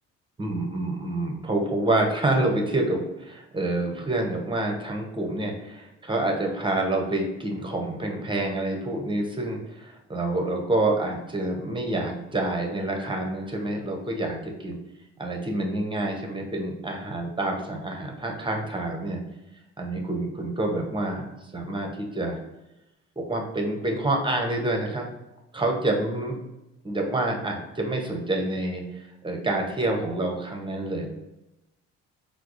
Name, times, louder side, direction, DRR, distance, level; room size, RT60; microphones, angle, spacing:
voice 1, 0.4-14.8 15.2-19.2 19.8-21.3 21.5-22.4 23.2-25.1 25.5-26.3 26.8-31.1, right 2 dB, 15° right, 1 dB, 0.7 m, -27 dB
4.5 x 2.0 x 2.5 m, 0.96 s
supercardioid pair, 65°, 32 cm